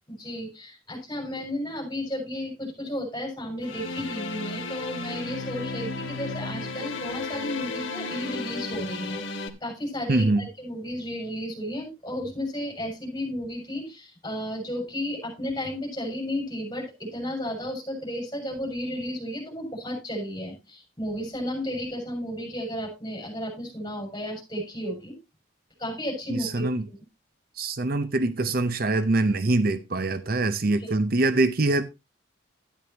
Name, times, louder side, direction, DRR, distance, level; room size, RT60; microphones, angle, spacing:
voice 1, 0.1-25.1 25.8-27.0, left 1 dB, 20° left, 6.2 m, -33 dB
sound 1, 3.6-9.5, left 3 dB, 80° left, 1.6 m, -34 dB
voice 2, 10.1-10.5 26.3-26.8 27.6-31.8, right 2 dB, 45° right, 0.6 m, -24 dB
13.0 x 10.5 x 2.9 m
head